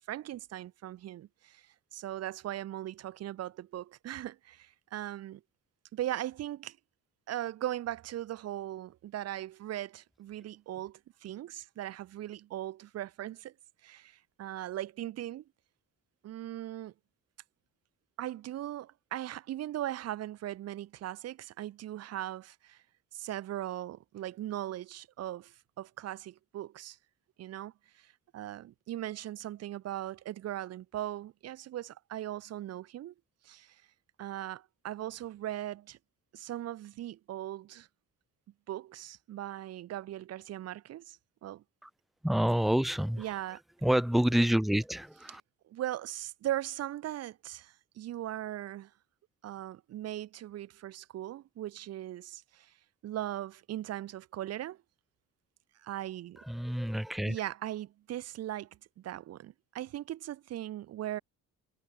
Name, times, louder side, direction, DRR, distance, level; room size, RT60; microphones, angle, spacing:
voice 1, 0.1-5.4 5.9-6.8 7.3-13.5 13.8-15.4 16.2-16.9 18.2-22.8 23.1-27.0 27.4-33.1 33.4-33.8 34.2-36.0 36.3-37.9 38.7-41.6 43.2-43.6 45.7-48.9 49.4-52.7 53.0-54.8 55.8-56.4 57.3-58.7 59.0-61.2, right 13 dB, 55° right, 0.6 m, -39 dB
voice 2, 42.2-43.3 43.8-45.4 56.4-57.4, equal, ahead, 0.4 m, -28 dB
cardioid pair, 90°, 30 cm